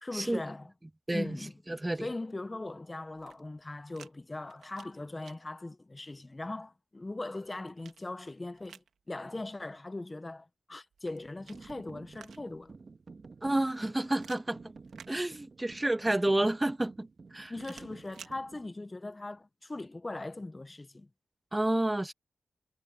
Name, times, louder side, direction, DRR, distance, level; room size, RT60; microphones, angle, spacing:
voice 1, 0.0-0.7 1.1-1.6 2.0-12.7 17.5-21.1, left 2 dB, 30° left, 0.9 m, -40 dB
voice 2, 1.7-2.1 13.4-14.7 15.1-17.1 17.3-17.5 21.5-22.1, right 1 dB, 20° right, 1.4 m, -29 dB
sound 1, 3.1-4.1 4.4-5.4 7.1-8.9 10.9-12.7 14.2-15.8 17.5-18.4, right 7 dB, 90° right, 1.7 m, -55 dB
sound 2, 11.4-18.7, right 4 dB, 55° right, 1.6 m, -51 dB
cardioid pair, 45°, 0 cm